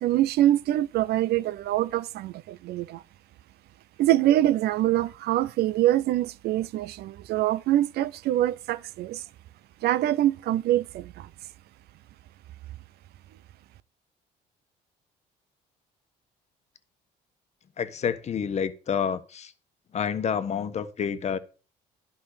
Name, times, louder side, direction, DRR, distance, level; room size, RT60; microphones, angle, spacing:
voice 1, 0.0-3.0 4.0-9.2 9.8-11.3, right 13 dB, 70° right, 0.6 m, -24 dB
voice 2, 17.8-19.5 19.9-21.4, left 7 dB, 40° left, 1.2 m, -28 dB
11.5 x 5.4 x 6.6 m
cardioid pair, 110°, 17 cm